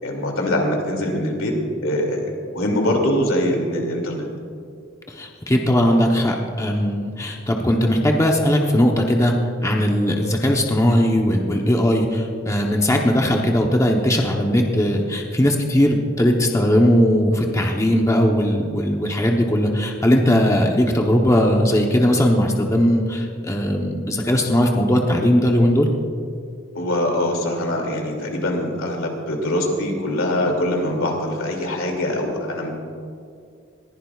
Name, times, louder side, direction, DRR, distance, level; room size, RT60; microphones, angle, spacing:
voice 1, 0.0-1.5 1.8-4.3 26.7-32.7, left 1 dB, 80° left, 1 dB, 2.6 m, -23 dB
voice 2, 5.1-9.4 9.6-25.9, equal, 15° left, 1 dB, 0.9 m, -19 dB
21.0 x 15.0 x 2.4 m, 2.3 s
head